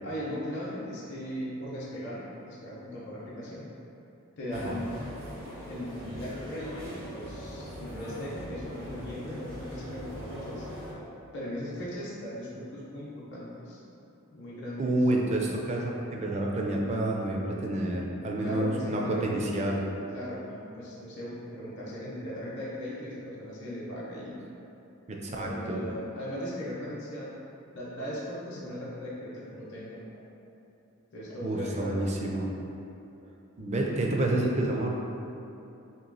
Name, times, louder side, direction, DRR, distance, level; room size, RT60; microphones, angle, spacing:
voice 1, 0.0-3.6 4.4-5.0 5.7-10.7 11.3-13.8 14.3-15.0 18.4-19.3 20.1-24.4 25.3-27.3 27.7-30.2 31.1-32.0, equal, 55° left, -8 dB, 0.7 m, -38 dB
sound 1, 4.5-10.9, equal, 85° right, 1.4 m, -41 dB
voice 2, 14.8-19.9 25.1-25.8 31.4-32.5 33.6-34.9, right 1 dB, 30° right, -1 dB, 0.4 m, -29 dB
3.1 x 2.9 x 3.9 m, 2.9 s
head